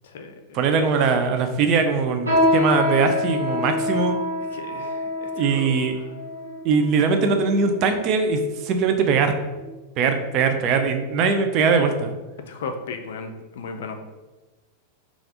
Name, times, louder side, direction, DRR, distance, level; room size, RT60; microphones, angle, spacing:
voice 1, 0.0-0.6 4.5-5.9 12.5-14.2, left 4 dB, 60° left, 6 dB, 0.4 m, -36 dB
voice 2, 0.5-4.2 5.4-6.0 6.6-9.3 10.0-12.1, right 5 dB, 40° right, 6 dB, 0.4 m, -21 dB
sound 1, 2.3-7.9 8.6-8.7 9.5-9.8 10.2-10.3 11.0-11.1, left 1 dB, 80° right, 1.2 m, -26 dB
3.3 x 2.4 x 3.7 m, 1.1 s
figure-of-eight pair, 90°, 0 cm